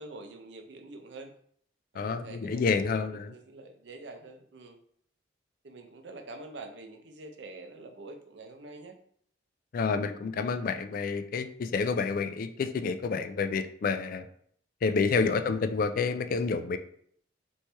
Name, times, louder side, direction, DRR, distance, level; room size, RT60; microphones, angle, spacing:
voice 1, 0.0-1.3 1.9-4.8 5.6-8.9 10.3-10.6 15.1-15.4, right 2 dB, 70° right, 6 dB, 0.6 m, -46 dB
voice 2, 2.0-3.3 9.7-14.3 14.8-16.8, left 4 dB, 50° left, 9 dB, 0.3 m, -29 dB
4.4 x 3.1 x 3.3 m, 0.63 s
head